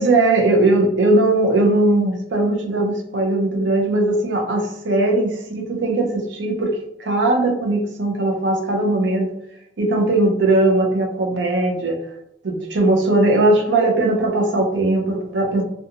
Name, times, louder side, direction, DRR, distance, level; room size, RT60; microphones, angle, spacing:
voice 1, 0.0-9.3 9.8-12.0 12.4-15.6, right 2 dB, 75° right, 2 dB, 0.6 m, -19 dB
2.5 x 2.3 x 2.8 m, 0.76 s
head